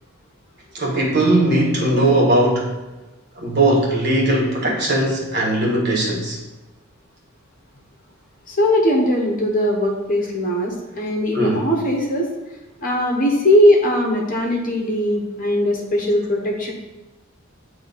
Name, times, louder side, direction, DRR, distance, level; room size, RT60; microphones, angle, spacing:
voice 1, 0.7-2.8 3.4-6.4 11.3-11.7, right 1 dB, 50° right, -3 dB, 1.5 m, -19 dB
voice 2, 8.5-12.3 12.8-16.7, left 1 dB, 40° left, 0 dB, 1.0 m, -19 dB
8.5 x 2.8 x 4.0 m, 1.1 s
head